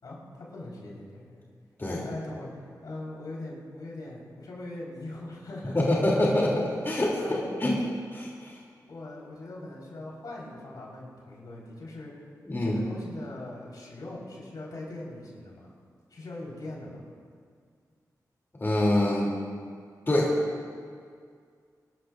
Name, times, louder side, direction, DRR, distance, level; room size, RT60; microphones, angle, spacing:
voice 1, 0.0-1.4 2.0-5.8 7.2-7.5 8.9-12.3 12.6-15.7 16.1-17.0, left 2 dB, 70° left, -4 dB, 4.4 m, -41 dB
voice 2, 5.7-7.8 8.1-8.6 12.5-12.7 18.6-19.3 20.1-20.3, left 1 dB, 30° left, -4 dB, 3.1 m, -25 dB
27.0 x 12.0 x 2.6 m, 2.1 s
cardioid pair, 65°, 7 cm